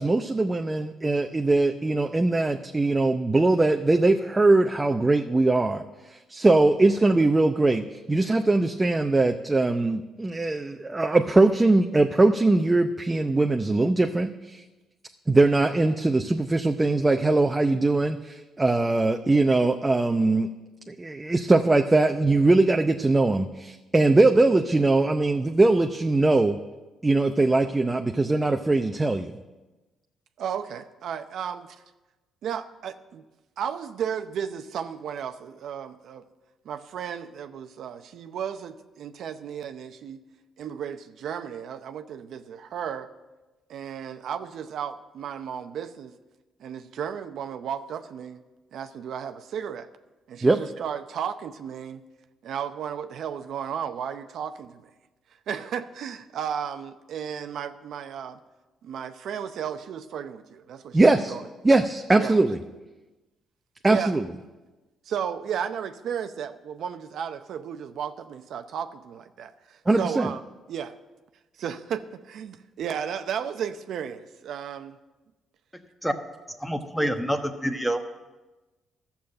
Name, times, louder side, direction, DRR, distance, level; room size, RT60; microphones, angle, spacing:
voice 1, 0.0-5.8 6.1-14.6 15.3-20.5 20.9-26.6 27.0-29.3 50.4-50.6 60.9-61.3 61.6-62.6 63.8-64.3 69.9-70.3, right 2 dB, 20° right, 5 dB, 0.6 m, -21 dB
voice 2, 30.4-31.8 32.4-33.2 33.6-36.3 36.6-40.2 40.6-43.1 43.7-46.1 46.6-48.4 48.7-49.9 50.3-52.0 52.4-54.9 55.5-58.4 58.8-61.0 61.3-61.4 62.1-62.4 63.9-64.1 65.1-70.4 70.7-70.9 71.6-75.0, right 8 dB, 70° right, 9 dB, 0.6 m, -34 dB
voice 3, 76.5-78.0, equal, ahead, 6 dB, 1.2 m, -27 dB
12.5 x 7.1 x 7.7 m, 1.1 s
cardioid pair, 90°, 0 cm